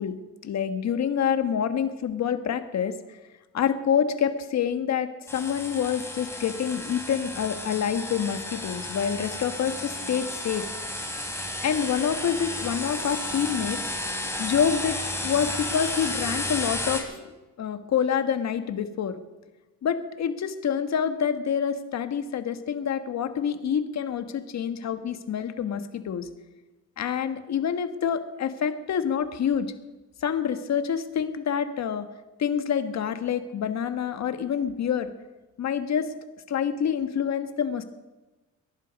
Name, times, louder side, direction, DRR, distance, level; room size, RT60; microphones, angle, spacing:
voice 1, 0.0-3.2 3.5-10.6 11.6-13.8 14.4-19.2 19.8-26.3 27.0-29.7 30.2-32.1 32.4-35.1 35.6-36.1 36.5-37.8, left 8 dB, 65° left, 9 dB, 1.5 m, -27 dB
sound 1, 5.3-17.0, left 1 dB, 10° left, 3.4 m, -33 dB
21.5 x 11.0 x 5.3 m, 1.1 s
cardioid pair, 90°, 30 cm